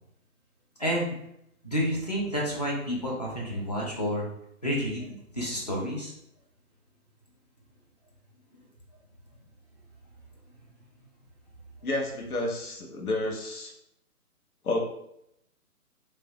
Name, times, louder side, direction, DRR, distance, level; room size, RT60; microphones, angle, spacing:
voice 1, 0.8-1.1 1.6-4.2 4.6-6.1, equal, 30° left, -3 dB, 0.4 m, -30 dB
voice 2, 11.8-13.7 14.6-14.8, left 2 dB, 75° left, -1 dB, 0.9 m, -30 dB
3.2 x 2.2 x 2.7 m, 0.77 s
figure-of-eight pair, 145°, 45 cm